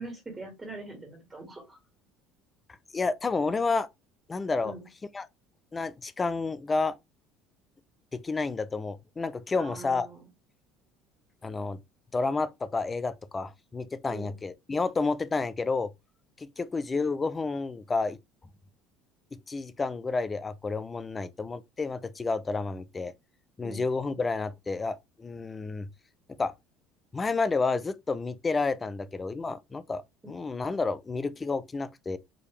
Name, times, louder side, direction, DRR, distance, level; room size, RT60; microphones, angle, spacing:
voice 1, 0.0-1.8 4.6-4.9 9.6-10.2 14.1-14.3 23.6-23.8, right 2 dB, 15° right, 1.7 m, -42 dB
voice 2, 2.9-3.9 4.3-4.7 5.1-5.3 5.7-7.0 8.1-10.1 11.4-11.8 12.1-15.9 16.4-18.2 19.3-23.1 23.6-25.9 26.4-26.5 27.1-32.2, left 4 dB, 20° left, 0.4 m, -30 dB
4.9 x 2.8 x 3.2 m
cardioid pair, 120°, 0 cm